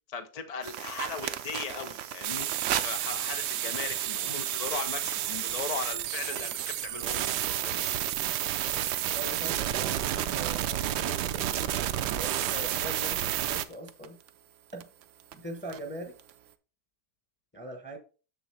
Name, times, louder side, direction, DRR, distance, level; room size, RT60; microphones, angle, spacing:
voice 1, 0.1-2.5 2.8-8.1, left 6 dB, 55° left, 0.4 m, -38 dB
sound 1, 0.6-16.5, right 10 dB, 65° right, 0.8 m, -42 dB
sound 2, 2.2-13.6, right 12 dB, 85° right, 1.2 m, -31 dB
voice 2, 9.1-14.2 14.7-14.9 15.3-16.2 17.5-18.0, right 1 dB, 10° left, 0.8 m, -42 dB
6.8 x 6.7 x 3.2 m
omnidirectional pair, 1.7 m